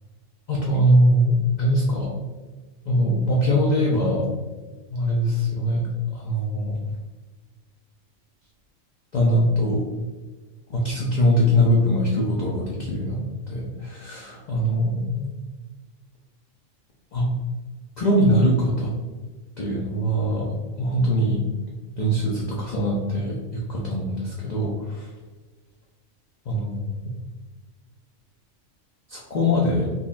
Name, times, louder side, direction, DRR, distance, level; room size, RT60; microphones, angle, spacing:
voice 1, 0.5-2.2 2.9-4.3 4.9-5.9 6.1-6.8 9.1-9.9 10.7-13.2 13.5-15.4 17.1-17.3 18.0-19.0 19.6-20.5 20.8-21.5 22.0-25.1 26.5-27.1 29.1-29.9, equal, 75° left, -3 dB, 0.4 m, -22 dB
3.7 x 2.3 x 2.4 m, 1.3 s
omnidirectional pair, 1.4 m